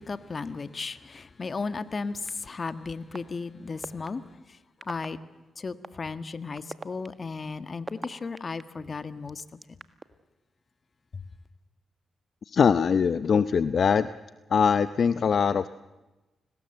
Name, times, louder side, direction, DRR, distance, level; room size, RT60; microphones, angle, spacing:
voice 1, 0.1-4.2 4.9-5.2 5.6-9.4, left 4 dB, 45° left, 12 dB, 1.6 m, -35 dB
sound 1, 2.3-2.4 3.1-3.2 3.8-4.1 4.8-5.1 5.8-5.9 6.6-8.6 9.3-10.1, right 3 dB, 30° right, 1.7 m, -38 dB
voice 2, 12.5-14.1 14.5-15.7, left 6 dB, 60° left, 14 dB, 0.8 m, -22 dB
29.5 x 20.0 x 8.0 m, 1.1 s
supercardioid pair, 55°, 0 cm